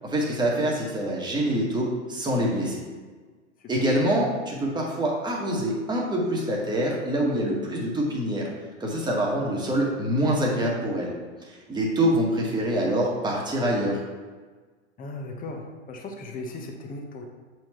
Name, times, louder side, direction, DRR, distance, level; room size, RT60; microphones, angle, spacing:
voice 1, 0.0-2.8 3.7-8.5 8.8-11.1 11.4-14.0, right 1 dB, 10° right, -3 dB, 1.5 m, -25 dB
voice 2, 15.0-17.2, left 2 dB, 25° left, 3 dB, 1.0 m, -38 dB
7.4 x 4.5 x 3.0 m, 1.4 s
hypercardioid pair, 110°, 37 cm